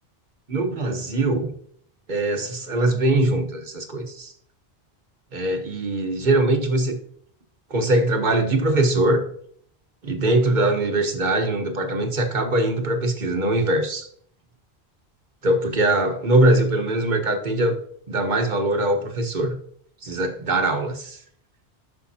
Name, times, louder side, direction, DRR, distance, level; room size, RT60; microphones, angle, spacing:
voice 1, 0.5-1.5 2.1-4.3 5.3-7.0 7.7-9.2 10.0-14.1 15.4-17.7 18.1-19.6 20.0-21.2, right 1 dB, 50° right, 5 dB, 1.3 m, -22 dB
11.5 x 5.8 x 2.8 m, 0.62 s
omnidirectional pair, 1.0 m